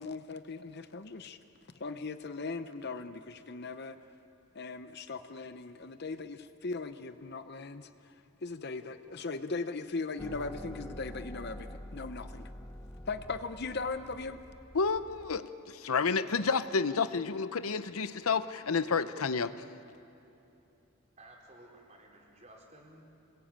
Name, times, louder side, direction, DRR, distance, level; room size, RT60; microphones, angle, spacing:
voice 1, 0.0-1.4 1.8-4.0 4.5-8.1 8.4-12.5 13.1-14.4, left 3 dB, 50° left, 10 dB, 0.7 m, -39 dB
sound 1, 10.2-15.4, equal, 15° left, 0.7 m, -46 dB
voice 2, 14.7-19.5, left 5 dB, 85° left, 12 dB, 0.8 m, -30 dB
voice 3, 21.2-23.1, right 1 dB, 35° right, -1 dB, 4.4 m, -55 dB
26.5 x 21.0 x 8.9 m, 2.8 s
head